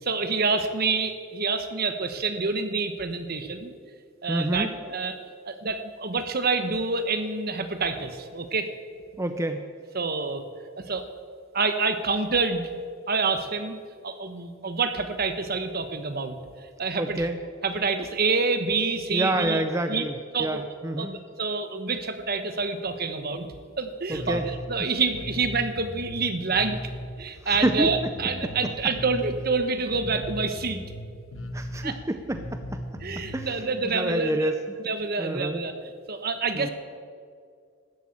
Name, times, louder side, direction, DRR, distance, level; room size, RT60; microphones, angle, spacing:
voice 1, 0.0-3.7 4.2-5.2 5.4-8.7 9.9-10.4 10.8-11.1 11.5-12.8 13.1-13.8 14.0-16.3 16.8-17.2 17.6-19.6 19.9-20.1 20.3-20.6 21.0-23.5 23.8-26.8 27.2-30.8 31.8-32.0 33.0-34.5 34.8-35.7 36.1-36.7, right 4 dB, 50° right, 8 dB, 1.1 m, -27 dB
voice 2, 4.3-4.7 9.2-9.6 17.0-17.4 19.1-21.2 24.1-24.5 27.4-27.9 31.5-32.8 33.3-33.6 33.9-34.6 35.2-35.6 36.5-36.7, right 1 dB, 15° right, 7 dB, 0.5 m, -28 dB
Bass guitar, 24.1-33.6, equal, 80° left, 1.1 m, -37 dB
13.5 x 8.5 x 8.6 m, 2.2 s
head